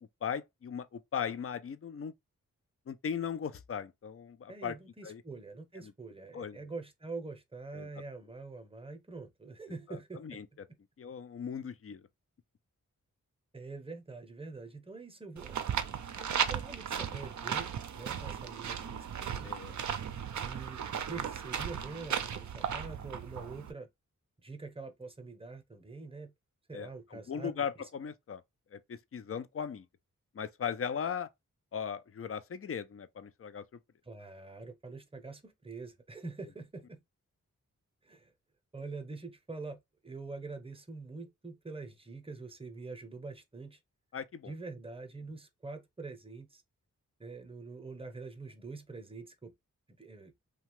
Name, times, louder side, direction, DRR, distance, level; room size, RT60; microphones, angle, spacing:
voice 1, 0.2-2.1 2.9-4.7 5.0-5.2 5.8-5.9 6.3-6.7 7.7-7.9 10.2-10.5 11.0-12.0 19.4-19.8 26.7-28.4 28.7-29.9 30.3-31.3 31.7-33.6 44.1-44.5, left 7 dB, 45° left, 0.5 m, -38 dB
voice 2, 4.5-10.4 10.7-10.8 13.5-15.5 16.2-19.5 20.4-23.9 24.4-26.3 26.7-27.9 34.1-37.0 38.0-38.3 38.7-43.8 44.4-46.6 47.2-49.5 50.0-50.3, right 3 dB, 15° right, 0.7 m, -45 dB
sound 1, 15.4-23.7, right 8 dB, 60° right, 0.5 m, -36 dB
2.7 x 2.3 x 3.0 m
cardioid pair, 45°, 33 cm